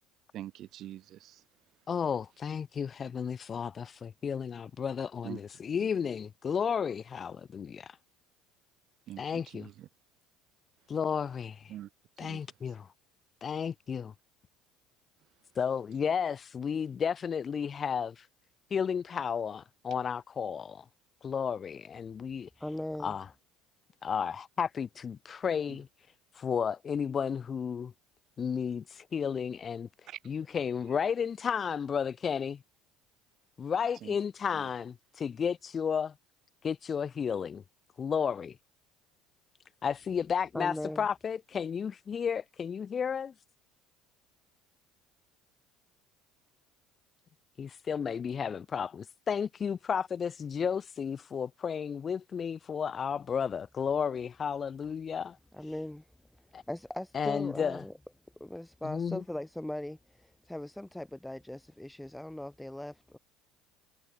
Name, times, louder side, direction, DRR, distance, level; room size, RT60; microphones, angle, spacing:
voice 1, 0.3-1.4 5.2-5.4 9.1-9.9 11.7-11.9 12.2-12.4 25.7-25.8 30.1-30.2 34.0-34.1 34.5-34.7, right 13 dB, 55° right, 0.4 m, -44 dB
voice 2, 1.9-8.0 9.2-9.7 10.9-11.7 12.2-12.9 13.4-14.1 15.6-18.3 18.7-20.8 21.2-22.5 23.0-23.2 24.0-25.9 26.4-27.9 28.4-29.9 30.3-32.6 33.6-36.1 36.6-37.6 38.0-38.6 39.8-43.3 47.6-55.4 56.5-56.6 57.1-57.8 58.8-59.2, left 7 dB, 35° left, 0.3 m, -33 dB
voice 3, 22.6-23.2 40.5-41.1 55.5-56.0 56.4-57.9 58.4-63.2, left 1 dB, 5° left, 0.6 m, -39 dB
hypercardioid pair, 70°, 0 cm